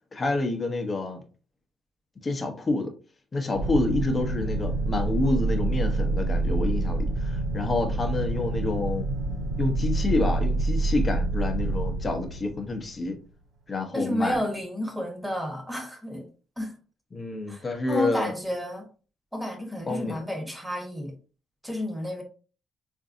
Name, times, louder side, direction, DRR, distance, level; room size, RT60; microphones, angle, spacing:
voice 1, 0.1-1.2 2.2-2.9 3.3-9.1 9.6-13.2 13.7-14.4 17.1-18.3 19.9-20.2, left 2 dB, 30° left, 0.7 m, -28 dB
sound 1, 3.5-13.2, right 2 dB, 85° right, 0.9 m, -27 dB
voice 2, 13.9-16.2 16.6-16.7 17.5-18.9 19.3-21.1 21.6-22.2, equal, 5° right, 1.0 m, -31 dB
3.8 x 2.5 x 2.5 m
cardioid pair, 90°, 0 cm